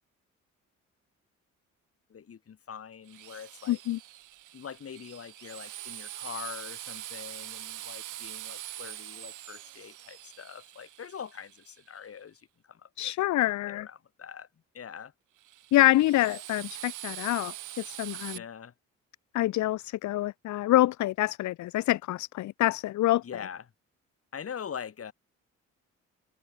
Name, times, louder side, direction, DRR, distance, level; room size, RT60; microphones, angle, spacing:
voice 1, 2.1-3.8 4.5-13.1 13.6-14.5 14.7-15.1 18.3-18.7 23.2-23.7 24.3-25.1, left 7 dB, 50° left, 4.8 m, -43 dB
Drill, 3.1-12.0 15.4-18.4, right 14 dB, 80° right, 2.5 m, -43 dB
voice 2, 3.7-4.0 13.0-13.9 15.7-18.4 19.3-23.2, left 16 dB, 70° left, 0.7 m, -26 dB
cardioid pair, 90°, 30 cm